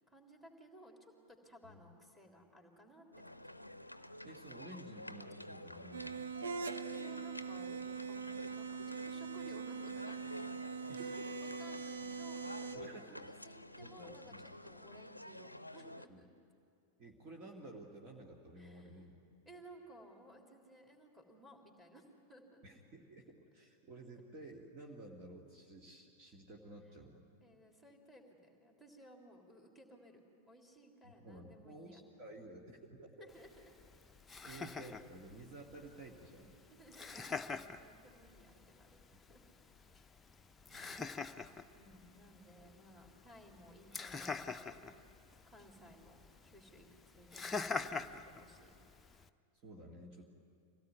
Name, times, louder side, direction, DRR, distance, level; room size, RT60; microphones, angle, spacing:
voice 1, 0.1-3.4 6.9-10.2 10.9-16.3 18.6-19.0 19.4-22.6 27.4-30.2 30.5-32.0 33.2-33.7 34.4-34.7 36.7-39.4 41.7-45.0 45.5-48.8, right 1 dB, 5° right, 1 dB, 3.4 m, -59 dB
sound 1, 3.1-16.1, left 1 dB, 85° left, 0.6 m, -50 dB
voice 2, 4.2-6.2 10.9-11.3 12.7-13.3 13.8-14.4 16.1-16.2 17.0-19.2 22.6-27.3 31.0-33.3 34.5-36.5 40.7-41.0 49.6-50.3, right 2 dB, 35° right, 0 dB, 2.2 m, -53 dB
sound 2, 5.9-12.8, right 5 dB, 65° right, 1.0 m, -42 dB
Laughter, 33.3-49.3, left 4 dB, 10° left, 0.7 m, -46 dB
25.5 x 17.5 x 9.5 m, 2.4 s
figure-of-eight pair, 90°, 0 cm